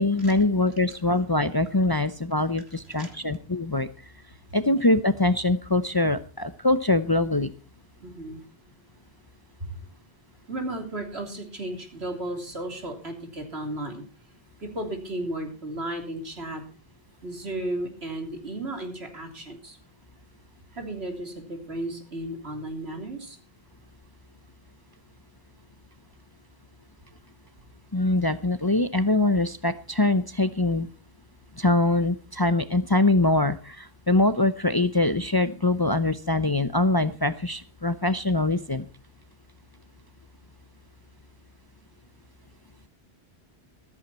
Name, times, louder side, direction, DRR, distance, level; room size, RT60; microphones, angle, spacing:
voice 1, 0.0-3.9 4.5-7.5 27.9-30.9 31.6-38.9, left 2 dB, 25° left, 12 dB, 0.6 m, -23 dB
voice 2, 8.0-8.4 9.6-9.7 10.5-14.0 14.6-16.6 17.2-19.8 20.7-23.4, right 1 dB, 80° right, 4 dB, 3.6 m, -34 dB
15.0 x 13.5 x 4.3 m, 0.34 s
omnidirectional pair, 1.1 m